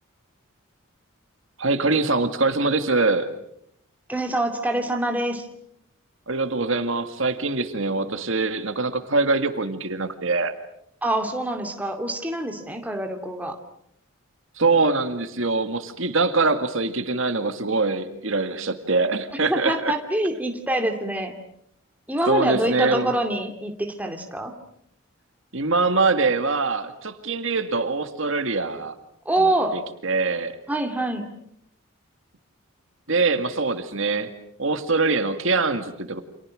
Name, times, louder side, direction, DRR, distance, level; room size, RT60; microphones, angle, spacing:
voice 1, 1.6-3.3 6.3-10.5 14.6-19.9 22.3-23.1 25.5-28.9 29.4-30.5 33.1-34.3 34.6-36.2, right 3 dB, 60° right, 8 dB, 2.0 m, -23 dB
voice 2, 4.1-5.5 11.0-13.6 19.5-21.3 22.1-24.5 29.3-29.8 30.7-31.3, right 1 dB, 5° right, 4 dB, 2.5 m, -25 dB
30.0 x 27.0 x 6.4 m, 0.72 s
head